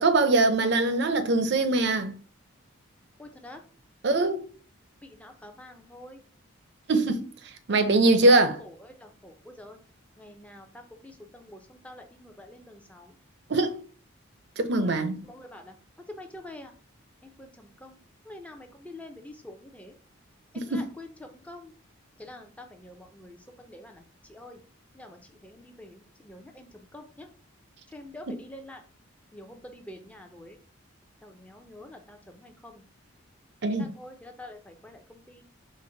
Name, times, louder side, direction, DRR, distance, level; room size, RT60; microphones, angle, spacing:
voice 1, 0.0-2.2 4.0-4.4 6.9-7.3 7.7-8.6 13.5-13.7 14.6-15.2 20.6-20.9 28.3-28.4 33.6-33.9, right 2 dB, 55° right, 0.5 m, -22 dB
voice 2, 3.2-3.6 5.0-6.2 8.2-8.3 9.0-9.8 10.2-10.7 11.0-13.1 14.8-15.0 15.2-15.7 16.1-16.7 17.2-18.0 18.3-19.9 20.7-21.7 22.2-24.0 24.3-24.6 24.9-27.3 27.9-28.8 29.3-30.6 31.2-32.8 33.7-35.4, left 1 dB, 5° left, 0.5 m, -46 dB
5.2 x 2.1 x 3.9 m
head